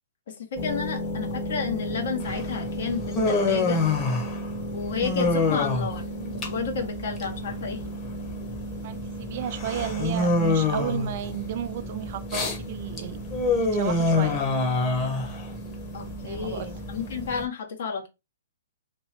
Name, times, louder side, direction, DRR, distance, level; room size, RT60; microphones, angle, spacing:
voice 1, 0.3-3.8 4.7-6.1 6.5-7.8 15.9-18.1, left 5 dB, 60° left, 1.3 m, -31 dB
sound 1, 0.5-17.4, right 1 dB, 40° left, 1.5 m, -35 dB
Human voice, 2.2-17.4, left 3 dB, 25° left, 1.1 m, -27 dB
voice 2, 8.8-13.2 13.5-14.4 16.2-16.7, right 11 dB, 50° right, 0.4 m, -33 dB
2.9 x 2.8 x 3.3 m
hypercardioid pair, 130°, 0 cm